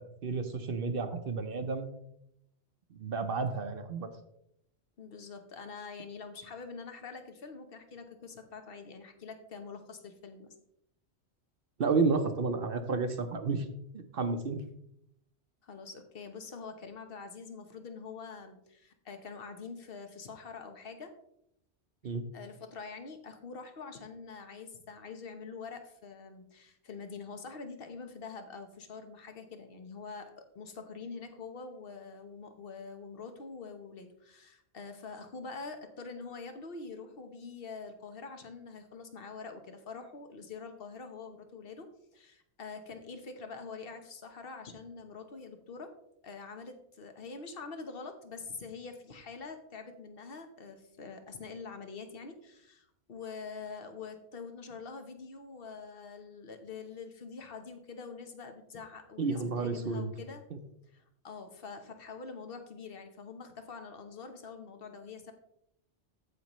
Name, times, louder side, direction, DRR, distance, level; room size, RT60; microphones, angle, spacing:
voice 1, 0.0-1.9 2.9-4.1 11.8-13.7 14.1-14.6 22.0-22.3 59.2-60.1, right 4 dB, 55° right, 7 dB, 0.9 m, -31 dB
voice 2, 5.0-10.5 15.6-21.1 22.3-45.9 46.2-60.4 60.9-65.3, left 4 dB, 55° left, 7 dB, 1.2 m, -45 dB
14.5 x 5.2 x 3.0 m, 0.77 s
omnidirectional pair, 1.2 m